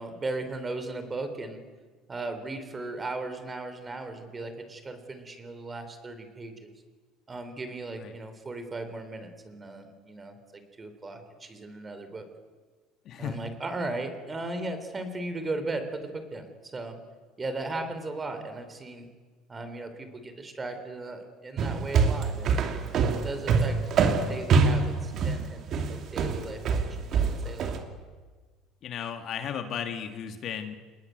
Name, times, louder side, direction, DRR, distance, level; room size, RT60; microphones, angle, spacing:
voice 1, 0.0-1.6 2.1-6.7 7.3-12.2 13.2-17.0 17.4-19.1 19.5-22.8 23.2-27.9, right 2 dB, 15° right, 8 dB, 3.5 m, -37 dB
voice 2, 13.1-13.5 28.8-30.8, left 8 dB, 40° left, 7 dB, 1.9 m, -35 dB
sound 1, 21.6-27.8, right 5 dB, 40° right, 2.8 m, -24 dB
28.0 x 20.0 x 9.2 m, 1.4 s
cardioid pair, 155°, 0 cm